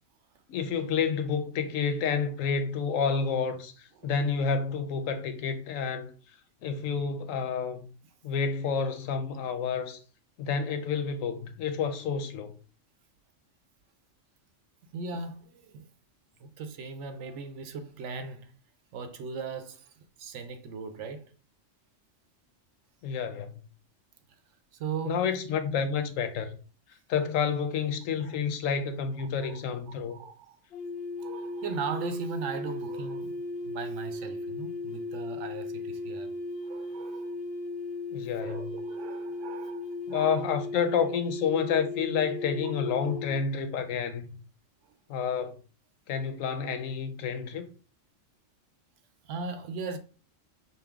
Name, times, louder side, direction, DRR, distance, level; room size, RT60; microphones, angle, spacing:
voice 1, 0.5-6.1 6.6-7.9 8.2-10.0 10.4-12.5 23.0-23.6 25.1-26.5 27.1-30.2 38.1-38.6 40.1-44.3 45.1-45.6 46.1-47.7, left 6 dB, 90° left, 1.0 m, -29 dB
voice 2, 14.9-15.9 16.4-18.5 18.9-21.3 24.7-25.3 28.2-28.4 29.2-29.6 30.1-30.6 31.2-36.3 36.6-37.4 38.3-40.4 40.9-41.1 42.6-42.7 44.8-45.0 49.2-50.0, right 4 dB, 70° right, 0.9 m, -38 dB
sound 1, 30.7-43.4, left 2 dB, 55° left, 1.0 m, -36 dB
5.5 x 2.0 x 3.5 m
omnidirectional pair, 1.3 m